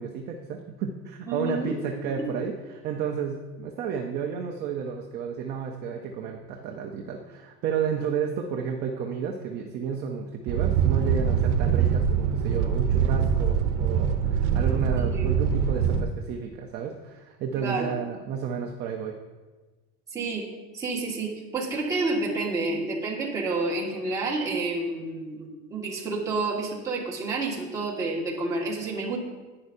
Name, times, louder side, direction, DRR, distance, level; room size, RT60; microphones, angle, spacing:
voice 1, 0.0-19.1, right 6 dB, 30° right, 2 dB, 0.6 m, -32 dB
voice 2, 1.3-1.8 2.1-2.3 14.9-15.3 17.5-17.9 20.1-20.5 20.7-29.2, right 3 dB, 10° right, -5 dB, 1.6 m, -29 dB
sound 1, 10.5-16.0, right 7 dB, 85° right, 0.8 m, -23 dB
10.5 x 9.6 x 2.6 m, 1.3 s
cardioid pair, 170°, 32 cm